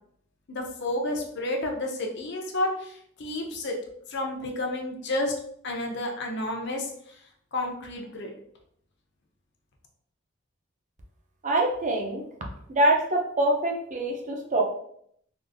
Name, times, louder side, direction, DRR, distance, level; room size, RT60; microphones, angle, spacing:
voice 1, 0.5-3.7 4.1-5.3 5.6-7.2 7.5-8.3, left 1 dB, 60° left, 2 dB, 0.6 m, -31 dB
voice 2, 11.4-12.2 12.7-14.6, right 1 dB, 40° right, 1 dB, 0.6 m, -24 dB
3.6 x 2.5 x 2.6 m, 0.68 s
head